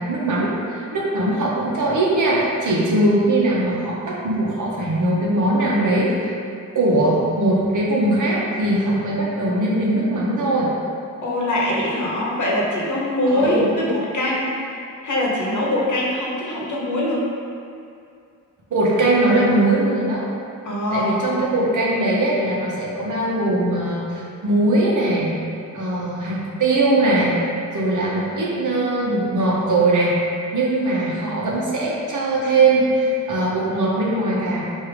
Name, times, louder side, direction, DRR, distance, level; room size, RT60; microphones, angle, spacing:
voice 1, 0.0-6.4 6.7-10.7 13.3-13.7 18.7-20.3 20.9-25.4 25.7-27.3 27.7-30.2 30.5-34.6, right 2 dB, 70° right, -5 dB, 0.9 m, -20 dB
voice 2, 11.2-17.3 20.6-21.3, left 1 dB, 70° left, -4 dB, 0.9 m, -23 dB
4.7 x 2.7 x 3.3 m, 2.4 s
cardioid pair, 75°, 32 cm